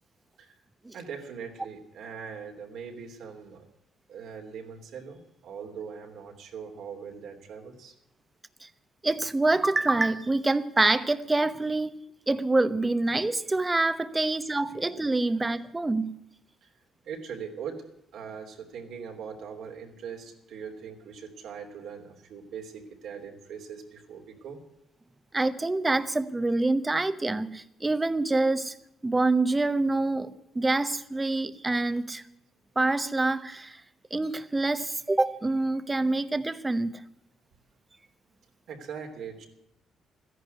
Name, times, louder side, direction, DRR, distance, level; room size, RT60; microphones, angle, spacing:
voice 1, 0.9-3.6 4.1-7.9 14.2-14.4 16.6-16.7 17.0-17.8 18.1-24.6 38.7-39.5, right 6 dB, 75° right, 2 dB, 3.1 m, -41 dB
voice 2, 9.0-11.9 12.3-16.1 25.3-28.7 29.0-32.2 32.8-33.8 34.1-37.0, right 2 dB, 20° right, 13 dB, 1.0 m, -26 dB
14.0 x 11.0 x 9.4 m, 0.78 s
cardioid pair, 90°, 0 cm